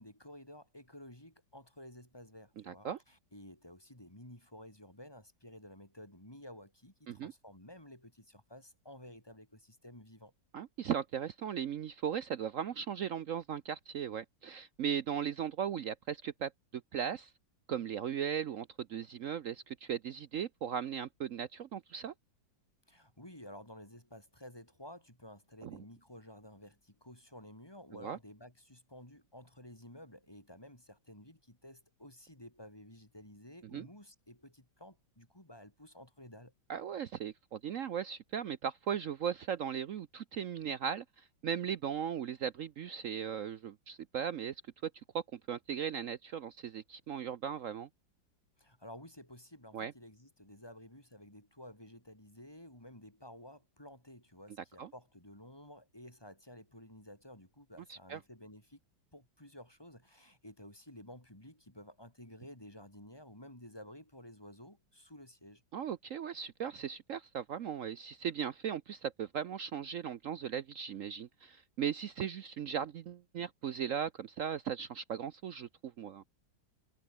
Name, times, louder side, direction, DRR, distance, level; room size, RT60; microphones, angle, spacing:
voice 1, 0.0-10.3 22.9-36.5 48.6-58.8 59.1-65.6, left 1 dB, 10° left, 4.8 m, -53 dB
voice 2, 2.6-3.0 7.1-7.3 10.5-17.3 17.7-22.1 25.6-25.8 28.0-28.2 33.7-33.9 36.7-47.9 49.7-49.9 54.8-54.9 57.9-58.2 65.7-76.2, right 8 dB, 65° right, 0.8 m, -38 dB
omnidirectional pair, 2.1 m